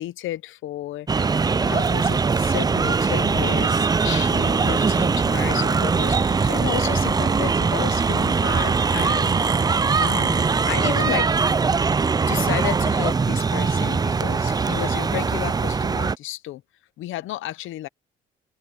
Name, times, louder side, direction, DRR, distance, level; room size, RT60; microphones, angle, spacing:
voice 1, 0.0-9.6 10.0-11.4 12.3-16.6 17.0-17.9, left 15 dB, 85° left, 0.8 m, -32 dB
sound 1, 1.1-16.2, right 5 dB, 20° right, 0.4 m, -21 dB
sound 2, 3.6-15.6, right 7 dB, 50° right, 2.2 m, -42 dB
open air
cardioid pair, 90°, 20 cm